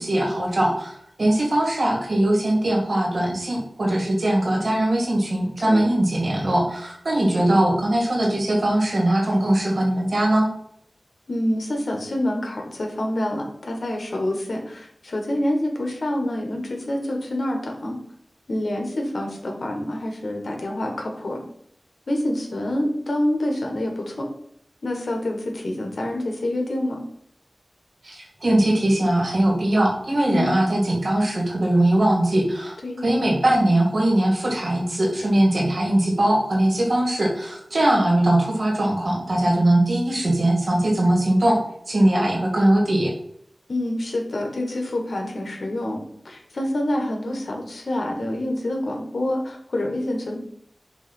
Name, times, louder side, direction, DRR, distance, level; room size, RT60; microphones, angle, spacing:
voice 1, 0.0-10.5 28.0-32.8 33.0-41.6 41.9-43.1, right 1 dB, 65° right, -1 dB, 2.1 m, -20 dB
voice 2, 11.3-18.0 18.5-21.4 22.1-24.3 24.8-27.0 30.3-30.6 32.8-33.0 43.7-50.4, left 1 dB, 75° left, 1 dB, 1.5 m, -27 dB
6.6 x 3.1 x 5.4 m, 0.69 s
wide cardioid pair, 55°, 0 cm